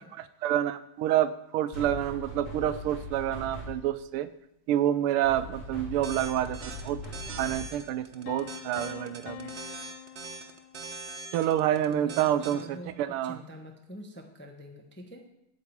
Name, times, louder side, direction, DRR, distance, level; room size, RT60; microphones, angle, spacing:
voice 1, 0.0-4.3 4.7-7.0 7.4-9.5 11.3-13.4, right 11 dB, 90° right, 14 dB, 1.5 m, -28 dB
sound 1, 1.7-4.0 5.2-7.9, left 1 dB, 35° left, 3.5 m, -40 dB
sound 2, 6.0-12.6, right 4 dB, 55° right, 0.8 m, -41 dB
sound 3, 8.3-11.2, left 10 dB, 75° left, 1.3 m, -44 dB
voice 2, 11.4-15.3, equal, 15° left, 3 dB, 0.4 m, -46 dB
8.8 x 6.0 x 8.3 m, 0.82 s
omnidirectional pair, 2.3 m